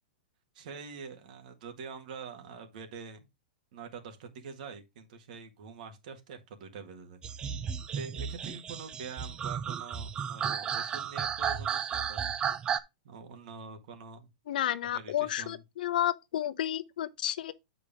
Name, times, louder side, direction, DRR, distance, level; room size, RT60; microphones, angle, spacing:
voice 1, 0.6-3.3 3.7-7.2 7.9-12.4 13.0-14.3 14.9-15.6, right 5 dB, 60° right, 1.8 m, -45 dB
sound 1, 7.2-12.8, right 7 dB, 20° right, 0.5 m, -33 dB
voice 2, 14.5-17.5, left 11 dB, 70° left, 0.7 m, -31 dB
8.5 x 5.0 x 3.5 m
hypercardioid pair, 150°, 5 cm